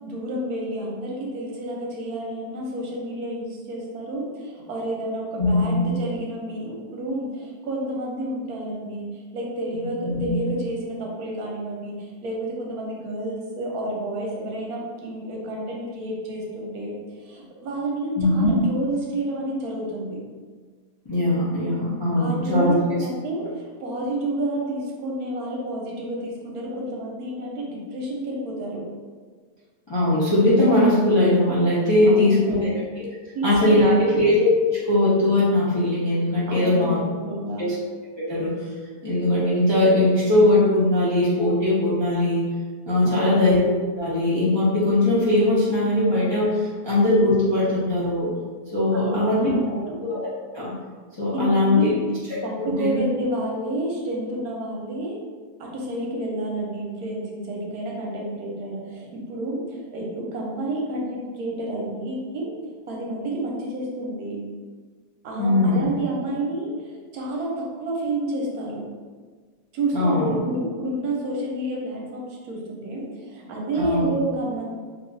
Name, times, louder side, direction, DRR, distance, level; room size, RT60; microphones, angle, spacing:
voice 1, 0.0-17.0 17.3-20.2 22.2-28.8 32.0-32.7 33.3-34.0 36.5-37.7 43.0-43.4 48.9-49.9 51.3-52.1 52.4-55.2 55.6-62.5 62.9-64.4 65.2-68.9 69.7-74.6, right 1 dB, 70° right, -2 dB, 1.2 m, -30 dB
voice 2, 5.4-5.8 9.7-10.3 18.2-18.5 21.1-22.8 29.9-32.7 33.0-33.1 33.4-34.5 34.9-37.0 37.6-37.7 38.2-38.5 39.0-42.4 42.9-43.6 44.0-48.3 48.7-49.5 50.1-50.2 50.5-50.7 51.2-51.9 52.6-53.0 65.4-65.9 69.9-70.4 73.8-74.1, left 1 dB, 30° left, -10 dB, 0.4 m, -20 dB
2.9 x 2.3 x 3.8 m, 1.5 s
omnidirectional pair, 1.7 m